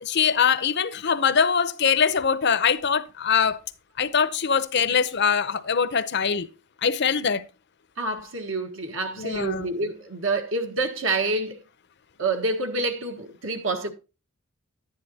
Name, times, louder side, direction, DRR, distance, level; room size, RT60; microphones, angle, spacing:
voice 1, 0.0-3.6 4.0-6.5 6.8-7.4 9.2-9.7, left 6 dB, 55° left, 0.7 m, -23 dB
voice 2, 8.0-11.6 12.2-13.9, right 2 dB, 75° right, 1.5 m, -27 dB
11.0 x 9.8 x 2.8 m
head